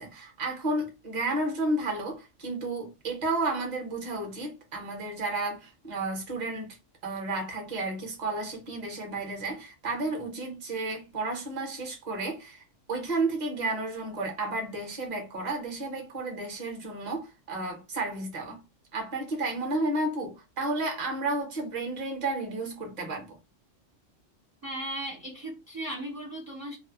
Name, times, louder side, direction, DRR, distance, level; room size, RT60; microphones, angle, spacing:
voice 1, 0.0-6.8 7.0-12.6 12.9-18.6 18.9-23.4, right 2 dB, 40° right, 0.9 m, -32 dB
voice 2, 24.6-26.8, right 1 dB, 20° right, 0.4 m, -36 dB
2.5 x 2.0 x 2.8 m
omnidirectional pair, 1.3 m